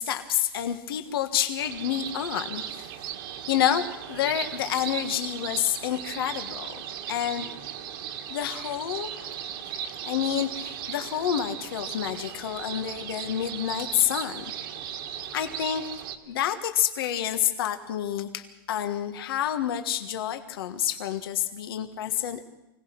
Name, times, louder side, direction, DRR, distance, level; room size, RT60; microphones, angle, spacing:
voice 1, 0.0-2.9 3.5-7.5 8.3-9.5 10.0-14.4 15.3-15.8 16.3-22.4, left 10 dB, 80° left, 7 dB, 1.5 m, -28 dB
sound 1, 1.6-16.2, right 9 dB, 70° right, 2.1 m, -37 dB
25.0 x 17.5 x 6.0 m, 0.94 s
supercardioid pair, 130°, 12 cm